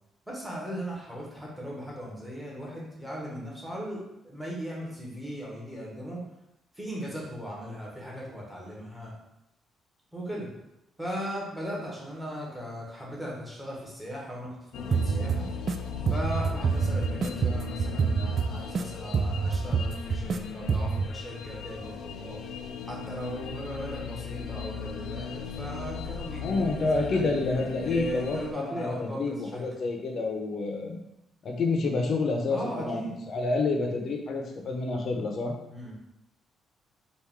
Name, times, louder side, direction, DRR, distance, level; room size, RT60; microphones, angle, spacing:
voice 1, 0.3-6.2 6.7-9.1 10.1-10.5 11.0-15.5 16.1-22.4 22.8-27.4 27.8-29.6 32.5-33.2 35.7-35.9, equal, ahead, -4 dB, 1.4 m, -38 dB
sound 1, 14.7-28.5, left 6 dB, 85° left, 0.4 m, -38 dB
sound 2, 14.9-15.8 16.1-18.8 19.1-20.4 20.7-21.1, right 5 dB, 50° right, 0.3 m, -27 dB
voice 2, 26.4-31.0 31.4-35.5, left 3 dB, 55° left, 3 dB, 0.7 m, -29 dB
4.5 x 2.5 x 3.6 m, 0.87 s
cardioid pair, 90°, 0 cm